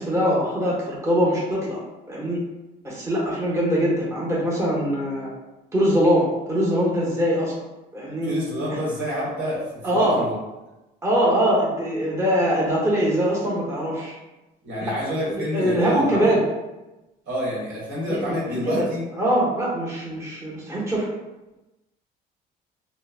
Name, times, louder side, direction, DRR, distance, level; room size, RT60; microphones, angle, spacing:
voice 1, 0.0-1.8 2.1-2.4 2.8-5.3 5.7-7.5 7.9-8.3 9.8-10.2 11.0-14.2 15.3-16.4 18.1-18.2 18.6-18.9 19.2-21.1, equal, 15° right, -5 dB, 0.8 m, -22 dB
voice 2, 8.2-10.4 14.6-16.3 17.3-19.1, equal, 70° right, -6 dB, 1.3 m, -28 dB
3.0 x 2.1 x 2.3 m, 1.0 s
supercardioid pair, 80°, 21 cm